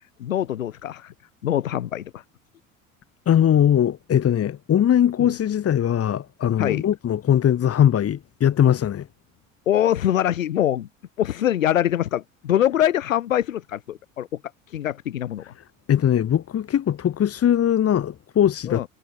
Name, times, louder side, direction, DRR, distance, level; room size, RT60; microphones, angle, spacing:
voice 1, 0.2-1.1 1.4-2.2 5.2-5.3 6.6-6.8 9.7-10.9 11.2-14.3 14.7-15.5 18.7-18.9, left 11 dB, 75° left, 7.1 m, -23 dB
voice 2, 3.3-9.1 15.9-18.8, left 10 dB, 35° left, 3.5 m, -20 dB
figure-of-eight pair, 70°, 40 cm